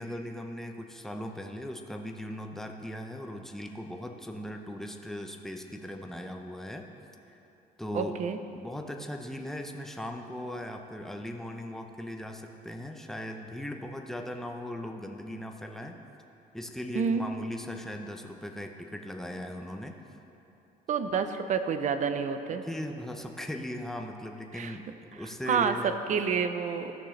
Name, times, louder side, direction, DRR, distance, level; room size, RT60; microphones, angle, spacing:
voice 1, 0.0-6.9 7.3-7.4 7.8-8.2 8.5-16.0 16.5-20.0 22.5-26.0, left 1 dB, ahead, 3 dB, 0.7 m, -38 dB
voice 2, 7.9-8.4 16.9-17.2 20.9-22.6 24.5-24.7 25.5-26.9, right 6 dB, 45° right, 9 dB, 0.6 m, -28 dB
15.0 x 6.5 x 3.3 m, 2.9 s
cardioid pair, 110°, 17 cm